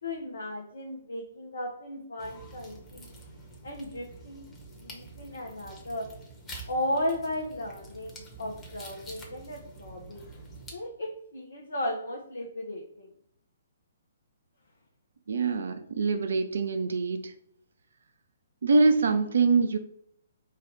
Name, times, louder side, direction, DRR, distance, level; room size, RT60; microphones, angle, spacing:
voice 1, 0.0-3.1 3.6-4.4 4.8-6.1 6.7-10.2 10.7-13.1, left 1 dB, 70° left, -1 dB, 0.8 m, -35 dB
sound 1, 2.2-10.7, right 2 dB, 15° left, 1.1 m, -47 dB
voice 2, 15.3-17.2 18.6-19.8, right 4 dB, 65° right, 9 dB, 0.6 m, -24 dB
4.6 x 2.4 x 4.5 m, 0.69 s
figure-of-eight pair, 125°, 0 cm